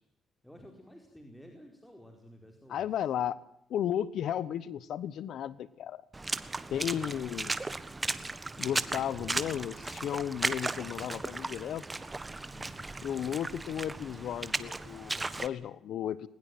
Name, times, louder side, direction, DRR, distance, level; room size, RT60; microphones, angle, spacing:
voice 1, 0.4-2.9 6.6-7.2 8.7-9.7 12.5-12.8, equal, 5° left, 3 dB, 4.6 m, -52 dB
voice 2, 2.7-3.4 3.7-6.0 6.7-7.5 8.6-11.9 13.0-16.3, left 10 dB, 75° left, 18 dB, 1.1 m, -34 dB
Water / Splash splatter, 6.1-15.5, right 2 dB, 20° right, 1.5 m, -36 dB
21.0 x 20.5 x 9.3 m, 0.72 s
cardioid pair, 90°, 0 cm